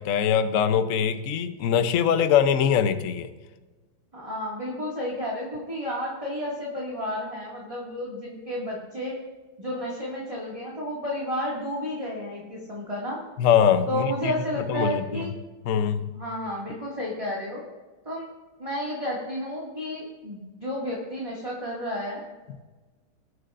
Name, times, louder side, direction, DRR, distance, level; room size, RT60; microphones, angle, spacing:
voice 1, 0.0-3.3 13.4-14.3 14.7-15.3 15.6-16.1, left 8 dB, 75° left, 10 dB, 0.7 m, -22 dB
voice 2, 4.1-9.2 9.6-13.2 13.9-15.4 16.1-17.6 18.1-18.3 18.6-22.2, equal, 15° right, -5 dB, 2.1 m, -31 dB
21.0 x 9.6 x 2.5 m, 1.3 s
omnidirectional pair, 2.3 m